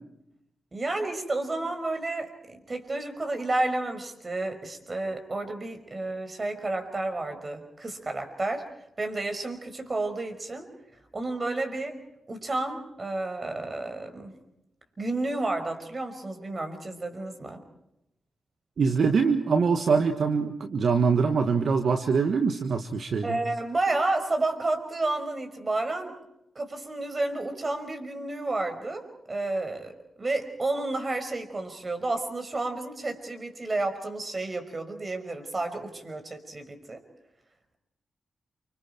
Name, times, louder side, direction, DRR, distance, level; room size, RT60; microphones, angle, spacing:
voice 1, 0.7-8.7 9.0-10.7 11.1-12.0 12.3-14.3 15.0-17.6 23.2-26.1 26.6-37.0, right 2 dB, 35° right, 6 dB, 5.6 m, -31 dB
voice 2, 18.8-23.4, right 5 dB, 65° right, 7 dB, 1.6 m, -24 dB
29.0 x 25.5 x 4.5 m, 0.85 s
cardioid pair, 55°, 0 cm